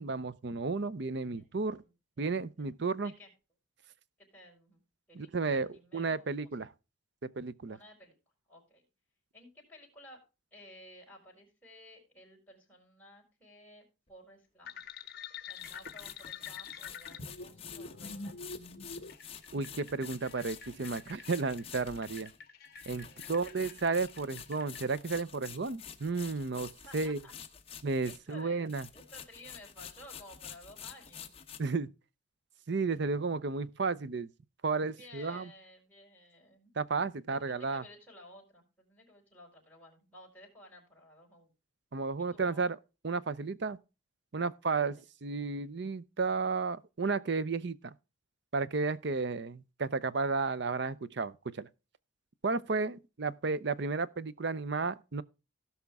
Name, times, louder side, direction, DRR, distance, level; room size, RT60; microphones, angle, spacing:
voice 1, 0.0-1.8 2.2-3.1 5.1-6.7 7.2-7.8 19.5-22.3 22.9-27.2 27.8-28.9 31.6-31.9 32.7-34.3 34.6-35.5 36.8-37.8 41.9-42.8 43.0-43.8 44.3-47.9 48.5-51.7 52.4-55.2, right 4 dB, 55° right, 0.6 m, -33 dB
voice 2, 1.3-2.3 2.6-2.7 3.0-3.3 4.2-4.8 5.1-6.5 7.7-8.1 8.5-8.8 9.3-10.2 10.5-14.8 15.5-18.4 23.0-23.8 26.8-27.3 28.0-28.6 28.9-31.3 34.8-36.7 37.3-41.5 42.2-42.7 44.8-45.0, left 1 dB, 10° left, 4.6 m, -55 dB
sound 1, 14.1-14.2 15.5-28.4 28.7-31.6, left 8 dB, 30° left, 1.0 m, -49 dB
sound 2, 14.7-24.9, left 5 dB, 50° left, 1.2 m, -47 dB
17.0 x 5.8 x 3.5 m
head